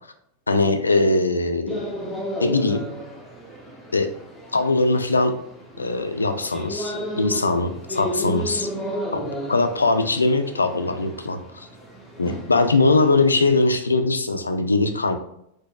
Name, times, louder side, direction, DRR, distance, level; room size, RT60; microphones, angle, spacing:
voice 1, 0.5-1.8 2.4-2.8 3.9-4.1 4.5-5.3 5.8-8.7 9.1-11.7 12.2-15.2, left 3 dB, 75° left, 8 dB, 0.3 m, -21 dB
sound 1, 1.7-13.7, equal, ahead, 0.8 m, -34 dB
3.8 x 2.6 x 2.3 m, 0.75 s
figure-of-eight pair, 90°, 0 cm